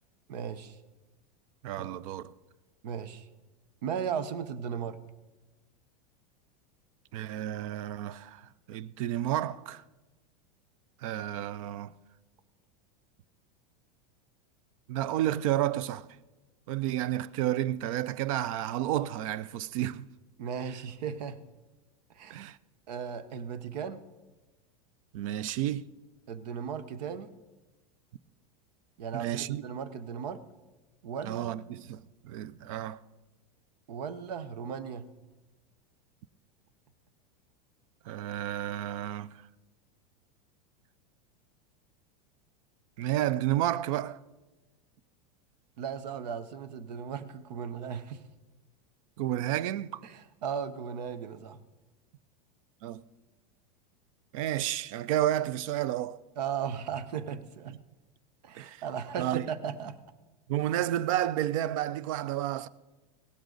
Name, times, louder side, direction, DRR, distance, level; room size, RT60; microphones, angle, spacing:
voice 1, 0.3-0.8 1.8-1.9 2.8-3.3 3.8-5.0 20.4-21.4 22.1-22.4 22.9-24.0 26.3-27.3 29.0-30.4 31.0-31.5 33.9-35.1 45.8-48.2 50.0-51.6 56.4-57.8 58.4-60.0, right 7 dB, 85° right, 0.9 m, -36 dB
voice 2, 1.6-2.3 7.1-9.8 11.0-11.9 14.9-16.1 16.7-20.1 22.3-22.6 25.1-25.9 29.1-29.6 31.2-33.0 38.1-39.3 43.0-44.2 49.2-50.0 52.8-53.0 54.3-56.2 58.5-58.8 59.2-59.5 60.5-62.7, right 13 dB, 55° right, 0.4 m, -31 dB
16.5 x 13.0 x 3.9 m
supercardioid pair, 165°, 20 cm